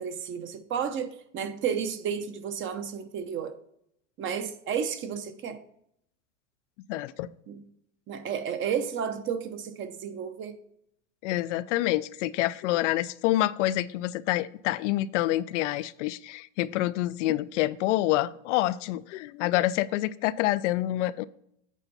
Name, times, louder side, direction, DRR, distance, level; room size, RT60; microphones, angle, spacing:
voice 1, 0.0-3.5 4.2-5.6 7.5-7.6 8.1-10.6, right 7 dB, 35° right, 10 dB, 0.8 m, -32 dB
voice 2, 6.9-7.3 11.2-21.2, left 15 dB, 75° left, 15 dB, 0.5 m, -27 dB
8.3 x 4.4 x 5.4 m, 0.72 s
supercardioid pair, 130°, 36 cm